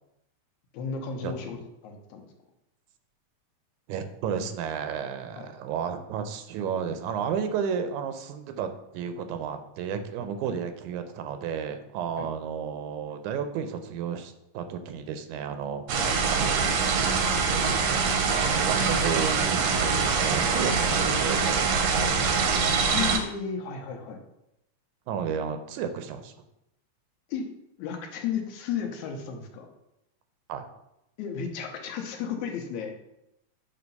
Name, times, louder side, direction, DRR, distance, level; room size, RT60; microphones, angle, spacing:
voice 1, 0.7-2.3 5.4-5.5 12.2-12.3 16.0-16.1 22.9-24.2 27.3-27.5 27.8-29.7 31.2-32.9, left 7 dB, 85° left, 3 dB, 2.2 m, -33 dB
voice 2, 3.9-8.7 8.9-15.8 18.3-21.7 22.0-22.4 25.1-26.3 30.5-30.7, right 7 dB, 90° right, 8 dB, 2.1 m, -32 dB
sound 1, 15.9-23.2, right 5 dB, 70° right, 1.4 m, -24 dB
7.8 x 2.9 x 5.3 m, 0.84 s
omnidirectional pair, 3.4 m